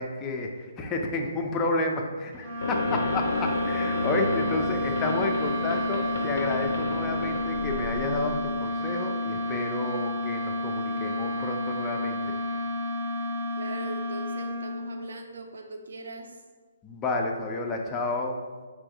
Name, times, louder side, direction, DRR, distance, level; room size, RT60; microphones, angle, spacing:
voice 1, 0.0-12.3 16.8-18.4, left 2 dB, 10° left, 1 dB, 0.3 m, -30 dB
sound 1, 2.4-15.1, left 1 dB, 20° right, 0.7 m, -31 dB
sound 2, 2.6-8.7, left 2 dB, 85° left, 0.4 m, -33 dB
voice 2, 5.4-6.1 13.6-16.4, right 2 dB, 75° right, 4 dB, 0.5 m, -41 dB
4.2 x 2.5 x 4.7 m, 1.4 s
hypercardioid pair, 175°, 0 cm